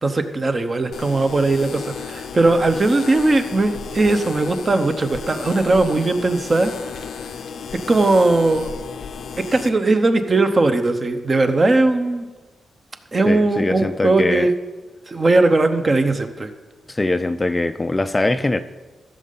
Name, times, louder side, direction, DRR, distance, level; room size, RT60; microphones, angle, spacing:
voice 1, 0.0-6.7 7.9-8.7 9.4-12.3 13.1-14.5 15.1-16.5, right 2 dB, 35° right, 8 dB, 0.8 m, -18 dB
sound 1, 0.9-9.7, left 6 dB, 80° left, 0.6 m, -33 dB
voice 2, 13.3-14.5 16.9-18.6, left 2 dB, 20° left, 10 dB, 0.4 m, -22 dB
14.5 x 6.5 x 3.9 m, 1.3 s
cardioid pair, 105°, 0 cm